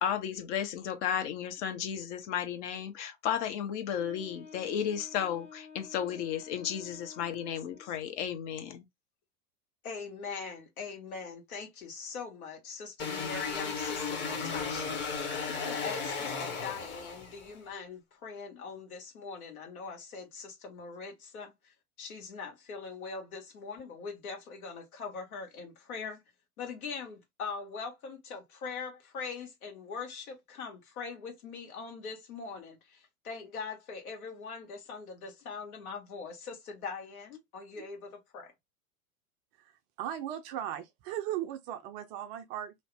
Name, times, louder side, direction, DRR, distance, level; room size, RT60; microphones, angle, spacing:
voice 1, 0.0-8.9, left 9 dB, 50° left, 0.9 m, -33 dB
Wind instrument woodwind instrument, 4.0-8.1, left 5 dB, 90° left, 1.5 m, -51 dB
voice 2, 9.8-15.0 15.4-21.5 22.0-26.2 26.6-38.5, left 5 dB, 70° left, 1.5 m, -42 dB
sound 1, 13.0-17.5, left 5 dB, 25° left, 0.9 m, -35 dB
voice 3, 40.0-42.7, right 11 dB, 35° right, 0.5 m, -37 dB
2.8 x 2.0 x 3.3 m
hypercardioid pair, 95°, 44 cm